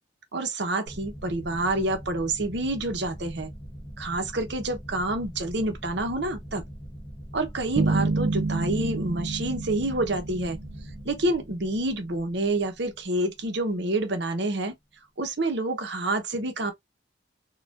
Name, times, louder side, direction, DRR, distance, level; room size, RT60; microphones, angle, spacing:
voice 1, 0.3-3.5 4.0-6.6 7.3-10.6 11.0-14.7 15.2-16.7, right 2 dB, 60° right, 0.9 m, -28 dB
sound 1, 0.9-14.1, equal, 30° left, 1.4 m, -42 dB
sound 2, 7.8-11.2, right 3 dB, 75° right, 0.4 m, -28 dB
4.2 x 2.4 x 2.4 m
head